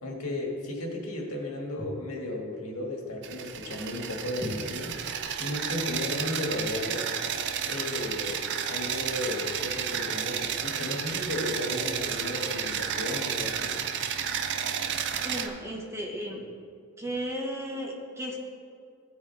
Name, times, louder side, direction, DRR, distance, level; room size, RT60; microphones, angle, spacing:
voice 1, 0.0-7.1 7.7-13.8, left 1 dB, 85° left, -1 dB, 1.9 m, -34 dB
sound 1, 3.2-15.5, right 8 dB, 55° right, 0.6 m, -32 dB
voice 2, 15.2-16.5 17.0-18.5, equal, 10° right, -1 dB, 1.3 m, -34 dB
16.0 x 6.2 x 3.4 m, 2.3 s
head